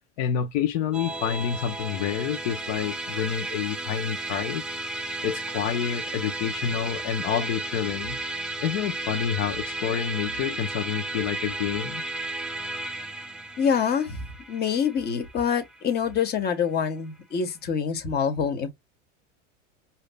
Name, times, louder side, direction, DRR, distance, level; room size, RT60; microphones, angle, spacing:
voice 1, 0.2-4.6 5.2-8.2 8.6-12.0, left 9 dB, 60° left, 1.2 m, -28 dB
Musical instrument, 0.9-16.4, right 2 dB, ahead, 0.3 m, -34 dB
voice 2, 13.6-14.2 14.5-18.7, left 7 dB, 25° left, 1.5 m, -26 dB
5.0 x 2.8 x 2.3 m
supercardioid pair, 130°, 37 cm